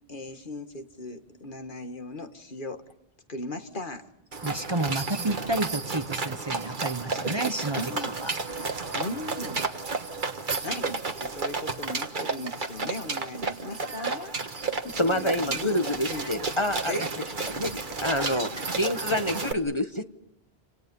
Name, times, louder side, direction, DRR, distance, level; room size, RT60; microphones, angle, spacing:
voice 1, 0.1-2.8 3.3-4.1 7.7-8.2 8.9-9.7 10.6-14.4 14.8-15.8 16.1-16.3 16.9-17.1, left 2 dB, 55° left, 7 dB, 2.0 m, -37 dB
sound 1, 4.3-19.5, right 4 dB, 50° right, 1.6 m, -32 dB
voice 2, 4.4-8.3 16.9-17.1 18.2-18.3, right 2 dB, 25° right, 10 dB, 1.1 m, -30 dB
voice 3, 15.0-16.9 17.5-17.7 18.0-18.5 18.7-20.0, left 1 dB, 30° left, 8 dB, 1.3 m, -27 dB
29.5 x 26.5 x 5.4 m, 0.82 s
omnidirectional pair, 1.0 m